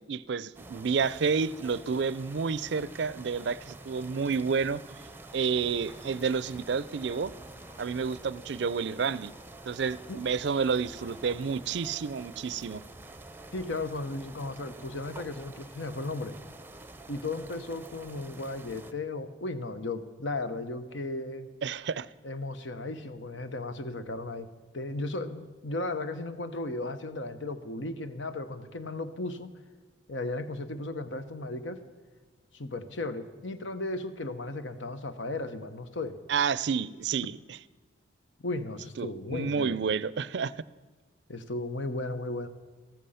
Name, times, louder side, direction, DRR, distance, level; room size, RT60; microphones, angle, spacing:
voice 1, 0.1-4.8 5.3-7.3 7.8-9.3 9.7-12.8 21.6-22.1 36.3-37.4 39.0-40.5, right 5 dB, 65° right, 18 dB, 0.4 m, -30 dB
sound 1, 0.5-18.9, right 2 dB, 10° right, 0.6 m, -48 dB
sound 2, 4.4-13.9, left 1 dB, 60° left, 3.4 m, -58 dB
voice 2, 13.5-16.3 17.1-21.5 22.2-24.5 24.7-29.5 30.1-31.8 32.5-36.2 38.4-39.8 41.3-42.5, left 2 dB, 80° left, 10 dB, 1.2 m, -35 dB
14.0 x 14.0 x 5.7 m, 1.4 s
head